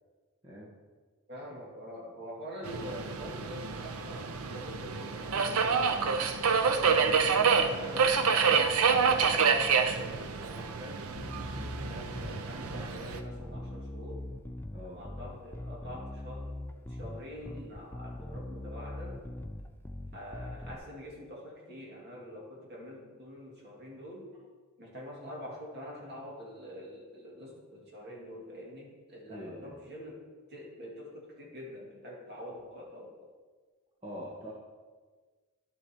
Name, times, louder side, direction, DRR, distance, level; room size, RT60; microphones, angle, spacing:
voice 1, 1.3-6.3 7.2-11.0 11.8-14.3 14.9-16.5 16.9-19.2 20.1-24.3 24.8-30.2 30.5-33.3, equal, 50° right, -3 dB, 2.2 m, -45 dB
Subway metro underground, 2.6-13.2, right 5 dB, 85° right, 0.6 m, -28 dB
Bass guitar, 11.2-20.8, left 1 dB, 10° left, 0.3 m, -41 dB
voice 2, 29.3-29.8 34.0-34.5, equal, 25° right, -6 dB, 1.2 m, -43 dB
11.0 x 7.6 x 2.9 m, 1.4 s
head